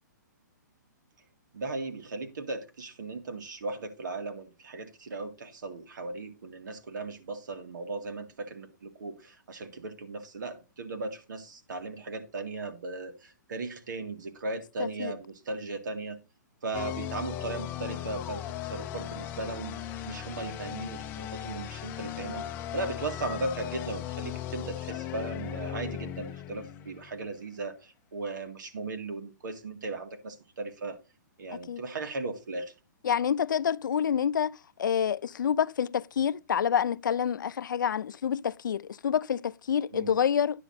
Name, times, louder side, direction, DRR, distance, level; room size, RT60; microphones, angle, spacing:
voice 1, 1.5-16.2 16.6-19.8 20.1-22.5 22.7-31.0 31.4-32.7 39.9-40.2, right 3 dB, 75° right, 2.0 m, -37 dB
sound 1, 16.7-27.4, left 11 dB, 20° left, 0.6 m, -37 dB
voice 2, 33.0-40.6, left 8 dB, 85° left, 0.4 m, -28 dB
9.8 x 7.6 x 4.1 m
hypercardioid pair, 160°, 10 cm